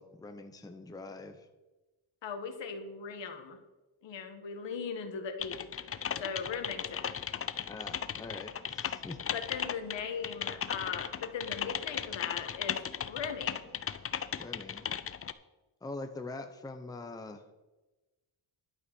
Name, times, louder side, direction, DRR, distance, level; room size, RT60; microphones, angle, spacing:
voice 1, 0.0-1.5 7.7-9.2 14.4-14.9 15.8-17.4, left 2 dB, 10° left, 5 dB, 0.9 m, -43 dB
voice 2, 2.2-3.6 4.0-7.1 9.3-13.6, left 6 dB, 60° left, 6 dB, 1.7 m, -39 dB
Typing, 5.4-15.3, left 8 dB, 30° left, 0.5 m, -36 dB
11.5 x 8.6 x 6.2 m, 1.1 s
cardioid pair, 110°, 48 cm